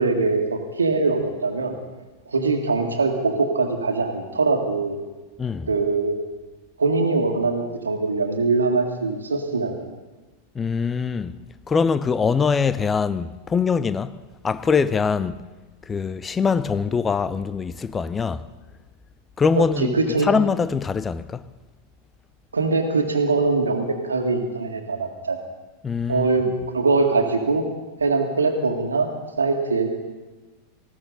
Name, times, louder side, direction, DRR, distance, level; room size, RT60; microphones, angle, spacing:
voice 1, 0.0-1.7 2.3-5.0 5.7-6.2 6.8-9.8 19.6-20.3 22.5-25.4 26.1-26.5 26.7-27.6 28.0-29.1 29.4-29.9, right 3 dB, 75° right, 1.8 m, -22 dB
voice 2, 10.5-11.4 11.7-14.2 14.4-15.4 15.8-18.4 19.4-21.4 25.8-26.5, left 5 dB, 15° left, 0.6 m, -23 dB
19.5 x 16.0 x 4.0 m
figure-of-eight pair, 90°, 0 cm